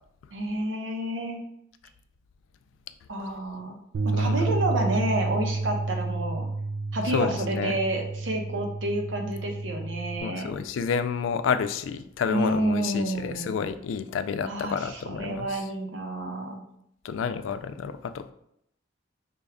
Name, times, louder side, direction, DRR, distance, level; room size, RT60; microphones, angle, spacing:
voice 1, 0.3-1.4 3.1-3.8 4.0-6.5 6.9-10.6 12.3-13.5 14.4-16.6, right 1 dB, 75° right, 2 dB, 0.8 m, -29 dB
Bass guitar, 3.9-10.2, right 3 dB, 90° right, 0.4 m, -30 dB
voice 2, 4.1-4.6 7.1-7.8 10.2-15.6 17.0-18.3, left 6 dB, 80° left, 10 dB, 0.3 m, -30 dB
5.1 x 2.3 x 3.4 m, 0.74 s
head